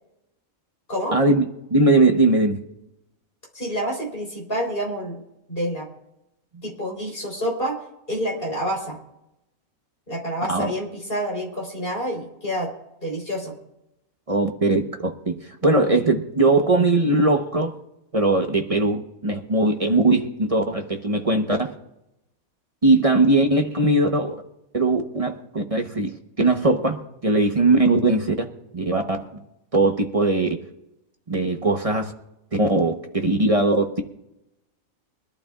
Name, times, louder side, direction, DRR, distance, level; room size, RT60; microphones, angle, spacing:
voice 1, 1.1-1.4 1.7-2.6 10.5-10.7 14.3-17.7 18.1-21.7 22.8-24.4 24.7-28.5 28.7-29.4 29.7-30.6 31.3-32.1 32.5-34.0, right 2 dB, 30° right, 4 dB, 1.0 m, -20 dB
voice 2, 3.5-5.2 5.5-5.9 6.6-7.8 8.1-9.0 10.1-12.7 13.0-13.5, equal, 40° left, -1 dB, 4.1 m, -28 dB
23.5 x 12.0 x 2.4 m, 0.85 s
omnidirectional pair, 1.5 m